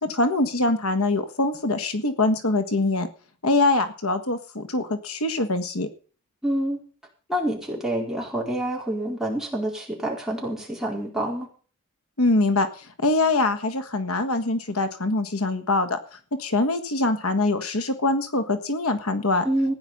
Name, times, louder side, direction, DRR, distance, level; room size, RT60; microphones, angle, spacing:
voice 1, 0.0-3.1 3.4-5.9 12.2-19.4, left 2 dB, 85° left, 10 dB, 1.6 m, -24 dB
voice 2, 6.4-6.8 7.3-11.5 19.4-19.7, right 1 dB, ahead, -2 dB, 4.5 m, -27 dB
15.0 x 10.0 x 5.6 m, 0.40 s
head